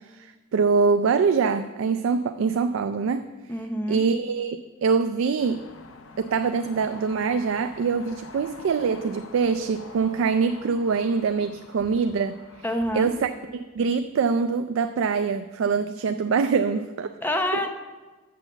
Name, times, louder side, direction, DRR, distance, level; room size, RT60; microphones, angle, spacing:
voice 1, 0.5-3.3 3.9-5.6 6.2-12.4 12.9-17.1, right 5 dB, 75° right, 9 dB, 0.3 m, -24 dB
voice 2, 3.5-4.1 12.6-13.1 17.2-17.7, left 1 dB, 10° left, 5 dB, 0.7 m, -27 dB
sound 1, 5.4-13.1, left 3 dB, 90° left, 0.7 m, -46 dB
7.1 x 6.0 x 6.9 m, 1.3 s
head